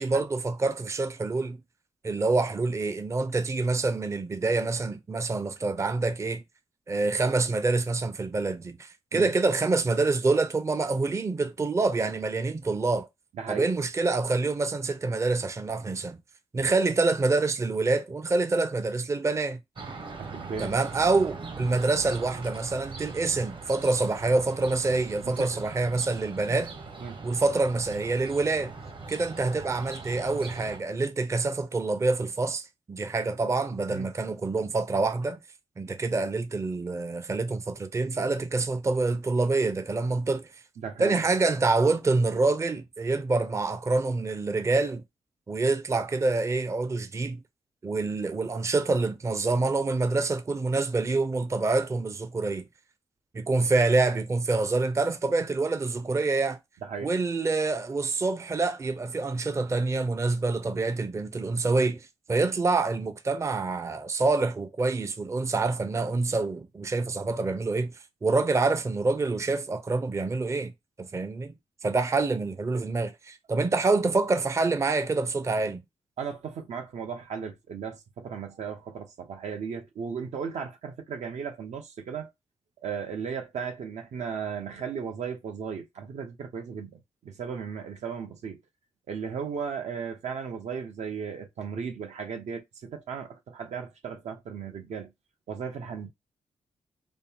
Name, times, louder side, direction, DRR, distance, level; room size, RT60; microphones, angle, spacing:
voice 1, 0.0-1.6 2.0-6.4 6.9-13.1 13.5-16.2 16.5-19.6 20.6-26.7 27.2-28.7 29.1-35.4 35.8-40.5 41.0-45.0 45.5-47.4 47.8-52.6 53.3-56.6 57.0-67.9 68.2-70.7 71.0-71.5 71.8-75.8, right 3 dB, 25° right, 0.5 m, -26 dB
voice 2, 13.3-13.7 20.2-20.8 25.2-25.5 27.0-27.2 33.9-34.1 40.8-41.2 56.8-57.1 76.2-82.3 82.8-88.6 89.1-95.1 95.5-96.1, right 6 dB, 80° right, 0.8 m, -36 dB
sound 1, 19.8-30.8, right 4 dB, 45° right, 1.0 m, -41 dB
5.3 x 2.0 x 2.8 m
cardioid pair, 95°, 12 cm